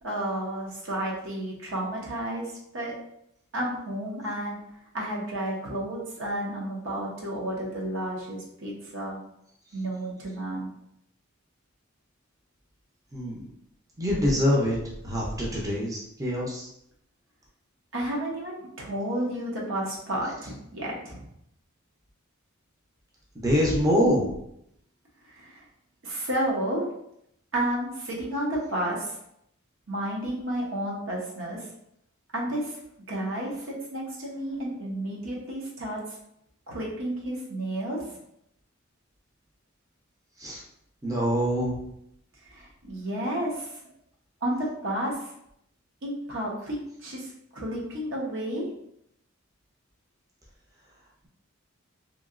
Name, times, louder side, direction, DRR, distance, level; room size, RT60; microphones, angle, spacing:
voice 1, 0.0-2.9 3.5-4.6 4.9-9.2 9.7-10.7 17.9-21.2 25.2-25.6 26.0-26.8 27.5-29.1 29.9-31.7 32.3-32.8 33.1-36.0 36.7-38.0 42.5-43.8 44.4-45.3 46.0-48.7, right 1 dB, 70° right, -3 dB, 0.9 m, -31 dB
voice 2, 13.1-13.5 14.0-14.8 15.0-16.7 23.3-24.3 40.4-40.6 41.0-41.7, equal, 15° right, -4 dB, 0.6 m, -25 dB
2.9 x 2.7 x 2.5 m, 0.75 s
head